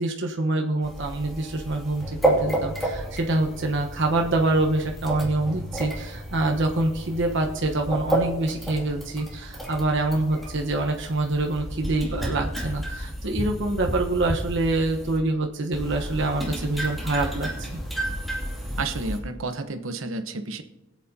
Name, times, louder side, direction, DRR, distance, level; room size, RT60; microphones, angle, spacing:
voice 1, 0.0-17.7, right 2 dB, 65° right, 2 dB, 1.1 m, -26 dB
sound 1, 0.8-15.2 15.7-19.2, right 1 dB, ahead, 2.4 m, -31 dB
voice 2, 18.8-20.6, right 3 dB, 90° right, 8 dB, 1.0 m, -31 dB
22.0 x 8.4 x 2.8 m, 0.96 s
head